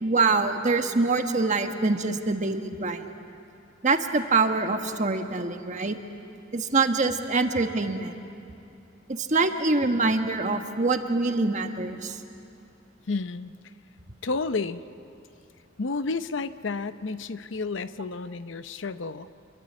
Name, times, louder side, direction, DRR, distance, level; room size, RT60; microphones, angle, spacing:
voice 1, 0.0-3.1 3.8-6.0 6.5-8.1 9.1-12.2, right 3 dB, 40° right, 6 dB, 1.4 m, -25 dB
voice 2, 13.1-13.7 14.2-14.8 15.8-19.3, left 3 dB, 70° left, 12 dB, 0.7 m, -31 dB
27.5 x 22.5 x 8.6 m, 2.6 s
head